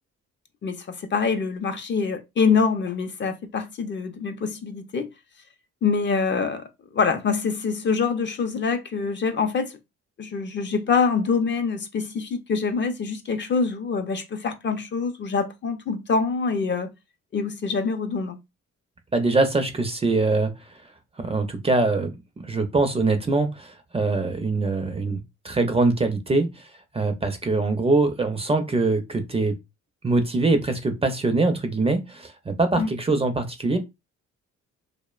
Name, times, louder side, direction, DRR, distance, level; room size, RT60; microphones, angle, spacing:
voice 1, 0.6-5.1 5.8-6.6 6.9-9.7 10.2-16.9 17.3-18.4 32.8-32.9, left 5 dB, 40° left, 0.5 m, -25 dB
voice 2, 19.1-20.5 21.2-26.7 26.9-29.6 30.0-33.8, right 3 dB, 20° right, 0.4 m, -23 dB
2.7 x 2.0 x 2.3 m
cardioid pair, 90°, 30 cm